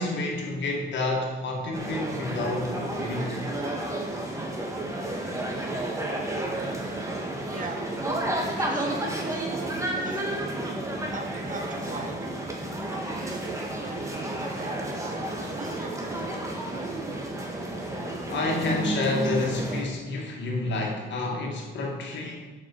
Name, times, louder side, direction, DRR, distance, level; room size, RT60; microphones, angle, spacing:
voice 1, 0.0-3.4 18.3-22.4, left 2 dB, 65° left, 0 dB, 2.4 m, -29 dB
sound 1, 1.7-19.8, right 1 dB, 15° right, 2.0 m, -31 dB
voice 2, 7.4-7.9 8.6-10.6 11.1-12.4 12.9-16.5, right 3 dB, 40° right, 5 dB, 1.4 m, -40 dB
7.4 x 6.2 x 7.5 m, 1.3 s
cardioid pair, 90°, 20 cm